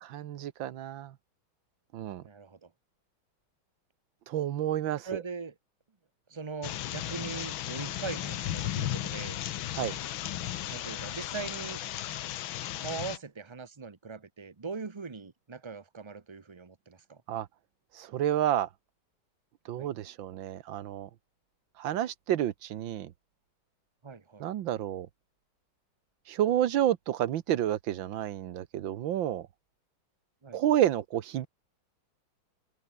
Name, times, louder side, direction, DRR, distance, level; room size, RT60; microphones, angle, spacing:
voice 1, 0.0-1.1 1.9-2.2 4.3-5.2 9.7-10.0 17.3-17.5 17.9-18.7 19.7-21.1 21.8-23.1 24.4-25.1 26.3-29.5 30.5-31.5, right 11 dB, 70° right, 1.6 m, -30 dB
voice 2, 2.2-2.7 5.0-5.5 6.3-9.4 10.7-11.8 12.8-17.2 19.8-19.9 24.0-24.4 30.4-30.6, right 5 dB, 40° right, 0.3 m, -40 dB
sound 1, 6.6-13.2, left 12 dB, 75° left, 1.7 m, -35 dB
open air
omnidirectional pair, 2.3 m